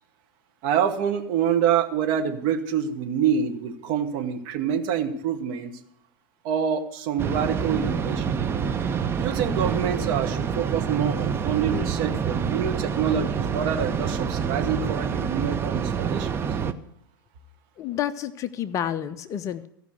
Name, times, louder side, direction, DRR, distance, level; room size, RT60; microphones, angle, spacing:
voice 1, 0.6-5.7 6.4-8.3 9.2-16.5, right 8 dB, 45° right, 6 dB, 1.2 m, -26 dB
sound 1, 7.2-16.7, right 7 dB, 20° right, 0.6 m, -27 dB
voice 2, 17.8-19.7, left 10 dB, 25° left, 12 dB, 0.5 m, -29 dB
14.5 x 5.4 x 7.9 m, 0.77 s
figure-of-eight pair, 95°, 12 cm